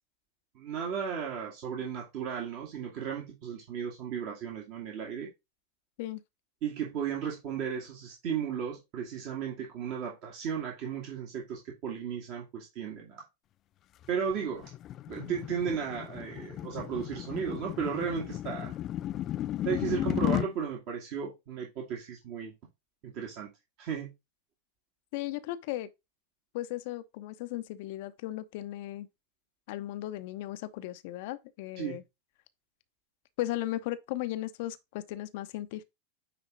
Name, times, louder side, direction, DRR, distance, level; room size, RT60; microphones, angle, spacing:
voice 1, 0.5-5.3 6.6-13.2 14.1-14.7 15.1-18.7 19.6-22.5 23.0-23.5 23.8-24.1 31.8-32.0, right 7 dB, 45° right, 2.1 m, -35 dB
sound 1, 14.0-20.5, left 13 dB, 35° left, 0.4 m, -34 dB
voice 2, 25.1-25.9 26.5-29.1 29.7-32.0 33.4-35.8, left 15 dB, 50° left, 0.8 m, -36 dB
9.4 x 3.9 x 3.8 m
figure-of-eight pair, 90°, 0 cm